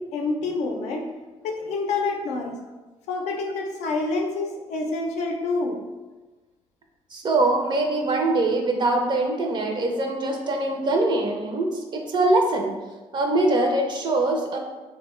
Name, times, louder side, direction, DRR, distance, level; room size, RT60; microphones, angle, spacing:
voice 1, 0.1-1.1 1.4-2.6 3.1-5.8, left 3 dB, 80° left, 2 dB, 0.5 m, -27 dB
voice 2, 7.1-12.8 13.1-14.6, right 2 dB, 45° right, 3 dB, 0.4 m, -23 dB
2.9 x 2.2 x 3.0 m, 1.2 s
cardioid pair, 80°, 11 cm